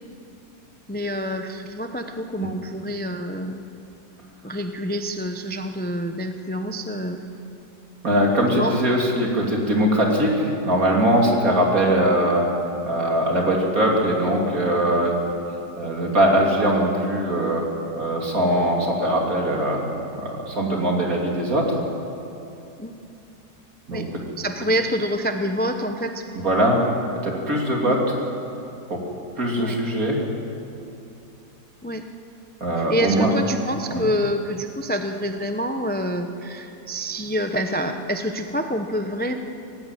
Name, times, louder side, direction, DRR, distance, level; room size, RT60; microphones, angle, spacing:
voice 1, 0.9-3.6 4.4-7.2 8.5-8.8 22.8-22.9 23.9-24.1 24.4-26.2 27.8-27.9 29.6-29.8 31.8-32.1 32.9-39.3, equal, 15° left, 6 dB, 0.3 m, -27 dB
voice 2, 8.0-12.5 12.9-15.2 15.7-17.6 18.0-19.8 20.2-21.8 23.9-24.0 26.3-26.8 27.2-28.0 28.9-29.0 29.4-30.1 32.6-33.3 33.9-34.1, right 1 dB, 50° right, -1 dB, 3.5 m, -21 dB
18.5 x 16.5 x 9.2 m, 2.7 s
omnidirectional pair, 1.9 m